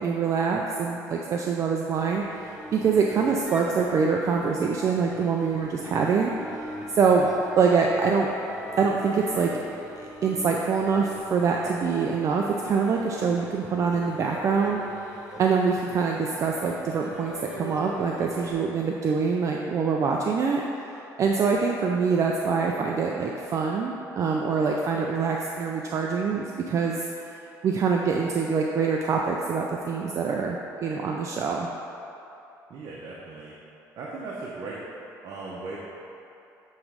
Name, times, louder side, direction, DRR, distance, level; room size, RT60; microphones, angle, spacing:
voice 1, 0.0-6.3 6.9-7.3 7.6-8.3 8.8-9.5 10.2-14.8 15.4-20.8 21.2-27.3 27.6-31.7, right 5 dB, 45° right, 0 dB, 0.5 m, -25 dB
sound 1, 1.9-18.5, equal, 5° right, 1.4 m, -42 dB
voice 2, 32.7-33.5 34.0-34.8 35.2-35.8, right 3 dB, 60° right, -5 dB, 0.9 m, -37 dB
9.4 x 3.2 x 5.1 m, 2.9 s
cardioid pair, 115°, 7 cm